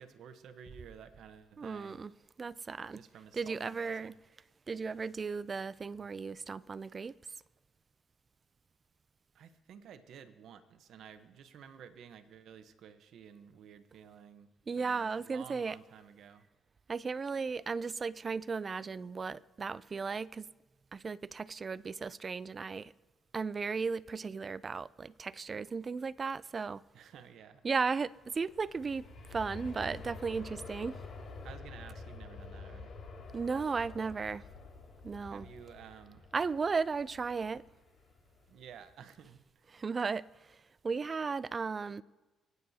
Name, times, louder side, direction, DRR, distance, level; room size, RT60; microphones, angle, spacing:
voice 1, 0.0-2.1 2.9-4.1 9.3-16.5 26.9-27.6 31.4-32.9 35.3-36.2 38.5-39.8, right 8 dB, 75° right, 0.9 m, -53 dB
voice 2, 1.6-2.1 2.4-3.0 3.3-4.1 4.7-7.1 14.7-15.8 16.9-20.5 20.9-22.9 23.3-26.8 27.6-29.1 29.3-31.0 33.3-34.5 35.0-35.5 36.3-37.6 39.7-40.6 40.8-42.0, right 5 dB, 35° right, 0.3 m, -35 dB
Aircraft, 28.0-38.9 39.3-39.4, left 3 dB, 65° left, 2.5 m, -49 dB
23.5 x 9.5 x 2.8 m
cardioid pair, 90°, 0 cm